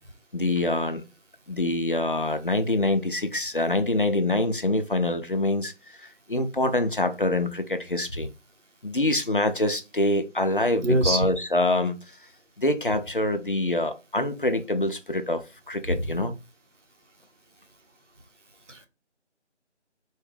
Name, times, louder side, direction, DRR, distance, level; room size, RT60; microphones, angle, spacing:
voice 1, 0.3-1.0 1.5-5.7 6.3-8.3 8.8-12.0 12.6-16.3, left 1 dB, 50° left, 0.5 m, -25 dB
voice 2, 10.8-11.2 15.9-16.0 18.7-18.9, right 2 dB, 85° right, 1.2 m, -23 dB
4.2 x 2.4 x 3.2 m
figure-of-eight pair, 165°, 35 cm